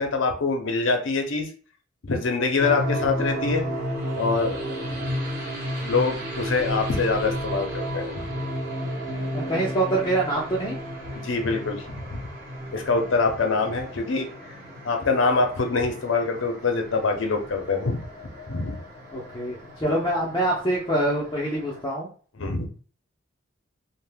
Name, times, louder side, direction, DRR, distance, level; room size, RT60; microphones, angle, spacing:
voice 1, 0.0-1.5 2.0-3.7 4.1-4.6 5.8-8.3 11.1-12.2 12.7-14.3 14.8-18.0 18.5-18.8 22.4-22.7, left 4 dB, 65° left, 4 dB, 0.6 m, -24 dB
sound 1, 2.6-21.8, equal, 45° right, 1.1 m, -33 dB
voice 2, 9.3-10.8 19.1-22.1, right 1 dB, 20° left, -6 dB, 0.5 m, -25 dB
2.6 x 2.1 x 3.3 m, 0.41 s
head